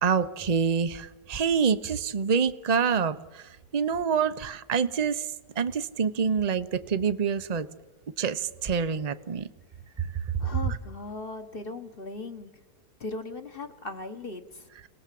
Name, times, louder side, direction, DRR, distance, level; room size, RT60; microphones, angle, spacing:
voice 1, 0.0-5.3 5.6-7.7 8.2-9.5 10.0-10.1 10.7-10.8, right 6 dB, 35° right, 11 dB, 0.7 m, -26 dB
voice 2, 10.4-12.5 13.0-14.7, left 3 dB, 35° left, 7 dB, 1.3 m, -38 dB
29.5 x 19.5 x 7.6 m, 1.2 s
omnidirectional pair, 1.8 m